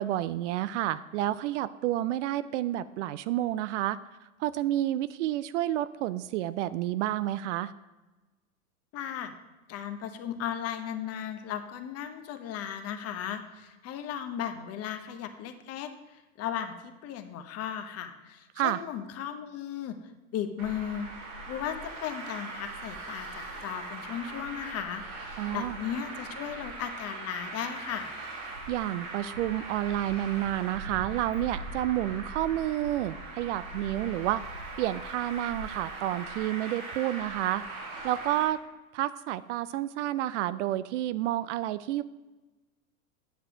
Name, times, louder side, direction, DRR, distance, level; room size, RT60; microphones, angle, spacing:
voice 1, 0.0-4.0 4.4-7.7 18.6-18.8 25.4-25.8 28.7-34.4 34.8-37.6 38.0-38.6 38.9-42.0, right 13 dB, 60° right, 15 dB, 0.5 m, -30 dB
voice 2, 8.9-9.3 9.7-20.0 20.3-21.1 21.5-28.1, left 9 dB, 35° left, 8 dB, 0.9 m, -36 dB
Traffic noise roadway noise, 20.6-38.4, right 2 dB, 85° right, 2.4 m, -40 dB
9.2 x 6.6 x 4.9 m, 1.1 s
hypercardioid pair, 95°, 42 cm